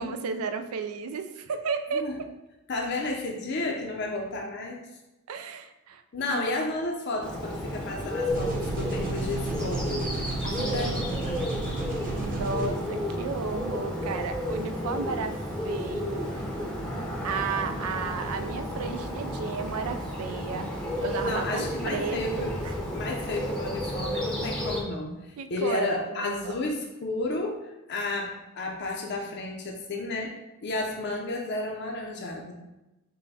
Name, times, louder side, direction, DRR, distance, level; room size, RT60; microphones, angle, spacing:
voice 1, 0.0-2.1 5.3-6.4 10.4-11.0 12.2-15.4 15.6-16.5 17.2-20.7 21.0-22.7 25.4-26.6, right 5 dB, 80° right, 8 dB, 0.4 m, -33 dB
voice 2, 2.7-4.8 6.1-10.0 10.5-11.5 21.2-22.6 22.9-30.4 30.6-32.5, left 2 dB, 50° left, 0 dB, 0.5 m, -32 dB
Bird, 7.2-24.8, equal, 5° left, 0.7 m, -32 dB
sound 1, 8.3-12.7, right 3 dB, 40° right, 0.8 m, -33 dB
5.4 x 2.2 x 4.0 m, 1.0 s
head